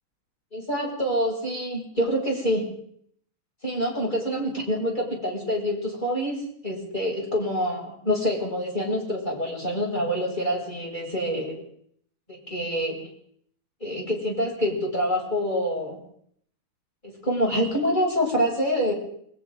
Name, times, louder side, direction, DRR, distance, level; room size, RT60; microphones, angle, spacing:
voice 1, 0.5-2.6 3.6-11.6 12.3-13.0 13.8-16.0 17.0-18.9, equal, 10° left, -2 dB, 7.2 m, -26 dB
29.5 x 23.0 x 3.9 m, 0.66 s
omnidirectional pair, 4.0 m